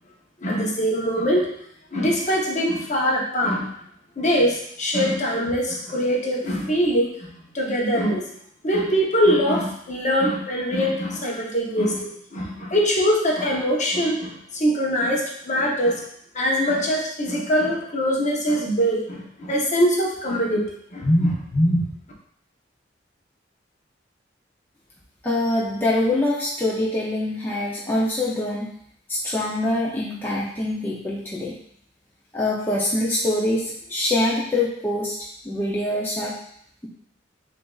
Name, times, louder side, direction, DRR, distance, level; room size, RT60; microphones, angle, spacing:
voice 1, 0.4-1.5 1.9-3.7 4.2-7.3 7.5-8.2 8.6-16.0 16.3-21.8, equal, 40° left, -2 dB, 0.8 m, -22 dB
voice 2, 25.2-28.7 29.1-31.5 32.3-35.2 35.4-36.4, left 1 dB, 10° left, -6 dB, 0.5 m, -24 dB
6.6 x 2.5 x 2.3 m, 0.67 s
head